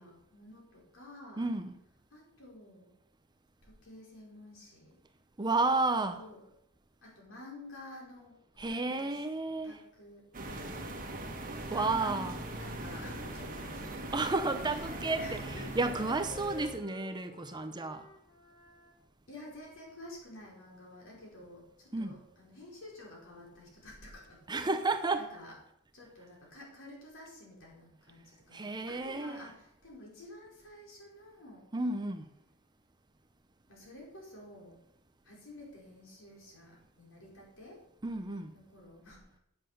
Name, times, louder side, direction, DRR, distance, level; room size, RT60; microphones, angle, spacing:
voice 1, 0.0-1.5 2.1-2.9 3.6-5.0 6.1-6.4 7.0-8.4 8.7-9.2 9.6-11.1 11.7-14.1 14.7-15.7 19.3-24.4 25.2-25.5 25.9-31.7 33.7-34.8 35.2-37.8 38.5-39.4, left 1 dB, 60° left, 4.8 m, -51 dB
voice 2, 1.4-1.7 5.4-6.2 8.6-9.8 11.7-12.4 14.1-18.1 21.9-22.2 24.5-25.3 28.5-29.5 31.7-32.3 38.0-38.5, right 3 dB, 20° right, 0.6 m, -32 dB
sound 1, 10.3-16.8, right 1 dB, 40° right, 1.6 m, -41 dB
Wind instrument woodwind instrument, 10.9-18.9, left 3 dB, 20° left, 1.3 m, -53 dB
9.7 x 7.8 x 6.7 m
head